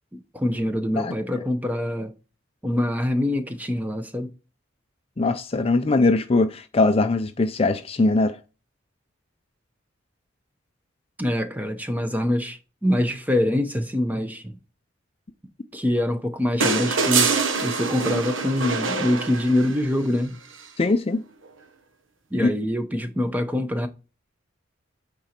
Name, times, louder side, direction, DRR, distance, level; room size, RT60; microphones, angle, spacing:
voice 1, 0.1-2.1 2.6-4.3 11.2-14.6 15.7-17.3 17.6-20.4 22.3-23.9, left 1 dB, 10° right, 0.7 m, -24 dB
voice 2, 1.0-1.4 5.2-8.4 20.8-21.2 22.4-22.5, left 3 dB, 30° left, 0.4 m, -21 dB
sound 1, 16.6-19.9 21.5-21.6, right 5 dB, 70° right, 1.0 m, -24 dB
8.9 x 3.8 x 4.4 m
head